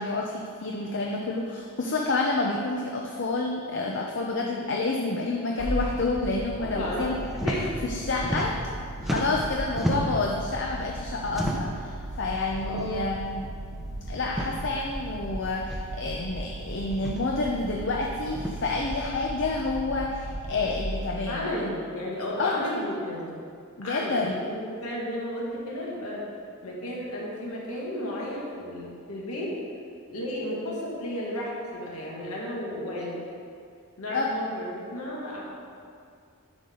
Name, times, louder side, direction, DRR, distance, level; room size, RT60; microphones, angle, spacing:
voice 1, 0.0-7.1 7.8-8.6 9.0-13.5 14.1-21.7 22.4-22.7 23.8-24.4 34.1-34.3, left 3 dB, 55° left, 0 dB, 0.6 m, -29 dB
sound 1, 5.6-21.4, right 1 dB, 35° left, 2.5 m, -37 dB
voice 2, 6.6-7.1 7.4-7.7 8.2-8.4 12.6-13.0 21.3-23.2 23.8-26.3 26.6-29.6 30.1-33.2 34.0-35.4, left 1 dB, 75° left, -4 dB, 1.9 m, -33 dB
sound 2, 7.3-7.6 7.9-8.7 9.0-10.3 11.3-11.8 12.7-12.9 13.2-13.3 14.2-14.5 15.7-15.8 16.9-17.2 18.3-18.6, equal, ahead, 0.7 m, -30 dB
11.0 x 6.6 x 3.8 m, 2.3 s
head